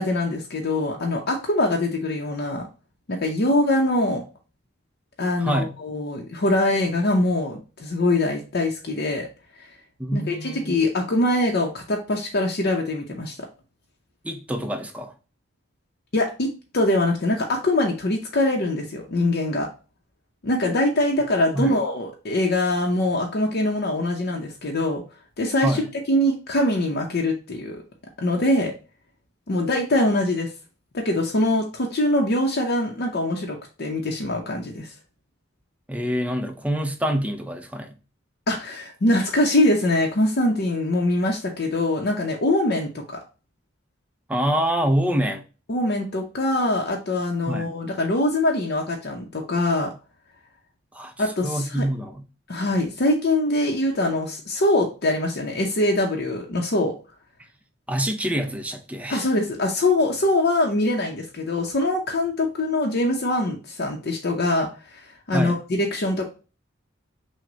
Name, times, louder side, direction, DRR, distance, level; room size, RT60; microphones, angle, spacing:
voice 1, 0.0-2.7 3.1-4.2 5.2-9.3 10.1-13.4 16.1-19.7 20.4-25.0 25.4-25.8 26.1-27.8 28.2-28.7 29.5-30.5 30.9-34.9 38.5-43.2 45.7-49.9 51.2-51.9 52.5-56.9 59.1-66.3, left 1 dB, 55° left, 0.7 m, -23 dB
voice 2, 5.4-5.7 10.0-10.8 14.2-15.1 21.5-21.8 25.6-25.9 35.9-37.9 44.3-45.4 47.5-47.7 50.9-51.1 51.4-52.2 57.9-59.2 65.3-65.6, right 1 dB, 5° right, 0.5 m, -26 dB
6.0 x 2.2 x 3.8 m
head